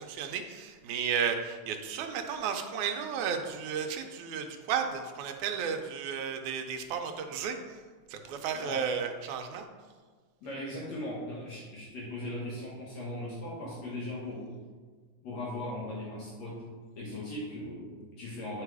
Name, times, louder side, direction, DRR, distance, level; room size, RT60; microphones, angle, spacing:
voice 1, 0.0-7.8 8.1-9.7, right 7 dB, 80° right, 5 dB, 2.0 m, -33 dB
voice 2, 10.4-14.5 15.2-16.7 17.0-18.6, left 1 dB, 65° left, -6 dB, 2.5 m, -38 dB
9.1 x 4.7 x 4.8 m, 1.5 s
omnidirectional pair, 3.5 m